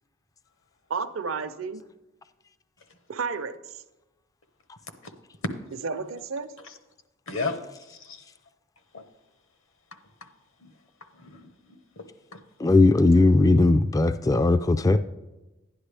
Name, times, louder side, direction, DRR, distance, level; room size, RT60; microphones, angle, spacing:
voice 1, 0.9-1.8 3.1-3.8 5.8-6.5, right 5 dB, 75° right, 11 dB, 0.6 m, -32 dB
voice 2, 7.3-8.3 8.9-9.0 10.6-10.7 11.1-12.1 12.3-12.4, left 4 dB, 70° left, 8 dB, 1.1 m, -35 dB
voice 3, 12.6-15.0, left 2 dB, 15° left, 11 dB, 0.3 m, -18 dB
11.5 x 10.0 x 3.4 m, 1.1 s
head